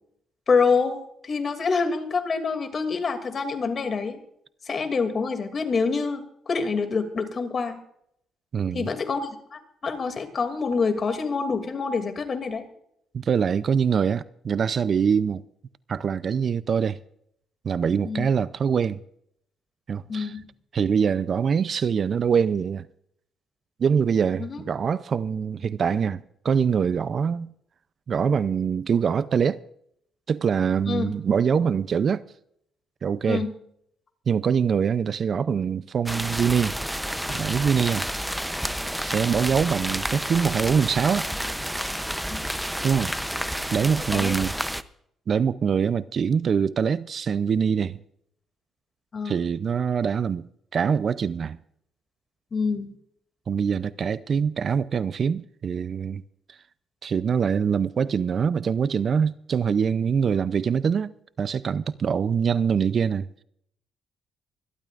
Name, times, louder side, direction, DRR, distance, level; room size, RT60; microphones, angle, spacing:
voice 1, 0.5-4.2 4.7-7.8 8.7-12.7 18.0-18.3 20.1-20.4 24.4-24.6 30.9-31.1 33.3-33.5 44.1-44.3 49.1-49.4 52.5-52.9, left 4 dB, 45° left, 2.5 m, -26 dB
voice 2, 8.5-8.9 13.1-15.4 15.9-17.0 17.6-19.0 19.9-20.3 20.7-22.9 23.8-27.5 28.1-29.6 30.3-32.2 33.0-33.5 34.3-36.8 37.3-38.1 39.0-41.3 42.8-43.1 43.7-44.5 45.3-48.0 49.2-50.5 50.7-51.6 53.5-56.2 57.0-61.1 61.4-63.4, right 7 dB, 50° right, 0.5 m, -24 dB
sound 1, 36.1-44.8, equal, 5° right, 0.7 m, -30 dB
25.0 x 12.5 x 2.5 m
cardioid pair, 90°, 0 cm